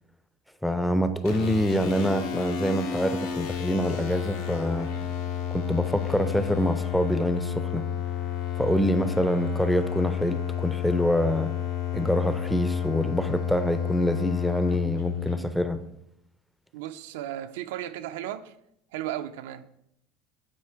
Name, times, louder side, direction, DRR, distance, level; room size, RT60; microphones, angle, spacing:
voice 1, 0.6-4.9 5.5-7.9 8.6-11.5 11.9-15.8, equal, ahead, 10 dB, 0.4 m, -26 dB
sound 1, 1.2-15.4, left 10 dB, 85° left, 1.0 m, -31 dB
voice 2, 16.7-18.5 18.9-19.7, right 12 dB, 90° right, 10 dB, 0.4 m, -35 dB
8.2 x 2.8 x 4.5 m, 0.78 s
supercardioid pair, 140°, 0 cm